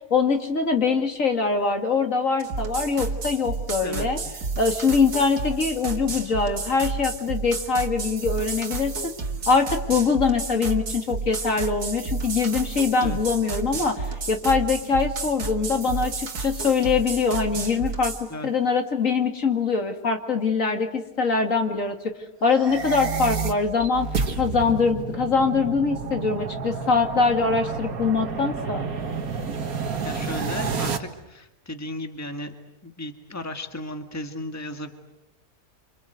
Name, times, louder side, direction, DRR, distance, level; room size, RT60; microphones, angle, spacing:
voice 1, 0.1-4.2 4.6-8.9 9.5-18.1 18.4-22.1 22.4-24.1 24.4-28.9, left 4 dB, 60° left, 5 dB, 2.6 m, -23 dB
sound 1, 2.4-18.2, right 4 dB, 85° right, 2.5 m, -31 dB
sound 2, 22.5-31.0, right 5 dB, 70° right, 2.1 m, -30 dB
voice 2, 30.0-32.5 32.8-34.9, left 1 dB, 10° left, 6 dB, 1.8 m, -35 dB
28.0 x 26.5 x 8.0 m, 0.89 s
omnidirectional pair, 1.6 m